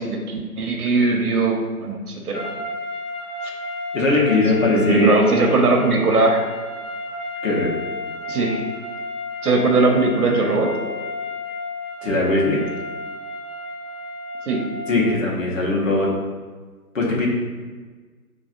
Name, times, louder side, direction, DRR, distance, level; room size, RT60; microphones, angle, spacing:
voice 1, 0.0-2.5 4.6-6.4 8.3-8.6 9.4-10.7 14.5-14.6 14.9-15.2, right 3 dB, 70° right, 1 dB, 0.7 m, -20 dB
sound 1, 2.3-15.2, left 1 dB, 90° left, 0.9 m, -32 dB
voice 2, 3.9-5.2 7.4-7.7 12.0-12.6 14.9-16.1 16.9-17.3, left 2 dB, 55° left, -3 dB, 0.9 m, -20 dB
3.5 x 2.4 x 2.4 m, 1.4 s
figure-of-eight pair, 150°, 45 cm